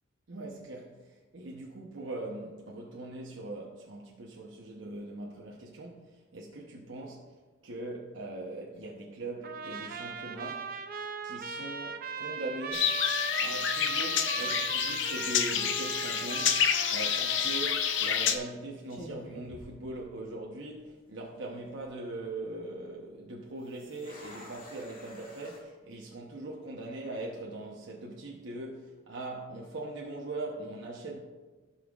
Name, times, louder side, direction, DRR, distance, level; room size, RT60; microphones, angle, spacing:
voice 1, 0.3-7.2 7.6-10.7 11.2-12.9 13.4-16.6 16.9-31.2, right 2 dB, 65° right, 0.9 m, -41 dB
Trumpet, 9.4-18.6, right 6 dB, 45° right, 0.5 m, -38 dB
sound 1, 12.7-18.4, left 8 dB, 65° left, 0.6 m, -28 dB
sound 2, 18.5-18.6 18.9-20.5 20.8-20.9 21.5-21.9 23.6-25.6, left 1 dB, 45° left, 2.1 m, -49 dB
16.0 x 5.7 x 2.4 m
head